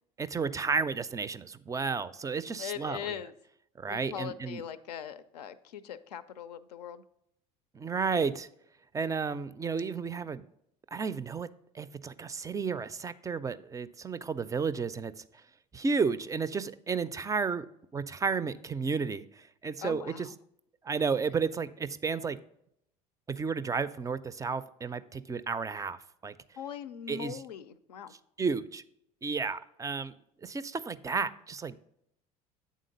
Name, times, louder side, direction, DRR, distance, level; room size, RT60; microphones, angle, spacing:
voice 1, 0.2-3.3 3.8-4.6 7.7-8.5 8.9-10.5 10.9-11.5 11.7-15.4 15.7-17.7 17.9-20.3 20.8-22.4 23.3-26.4 27.1-27.4 28.4-28.8 29.2-30.1 30.4-31.8, right 5 dB, 15° right, 15 dB, 0.3 m, -32 dB
voice 2, 2.6-3.3 3.9-7.0 19.8-20.2 26.6-28.1, left 9 dB, 85° left, 12 dB, 0.4 m, -40 dB
8.3 x 3.7 x 5.2 m, 0.75 s
hypercardioid pair, 70°, 20 cm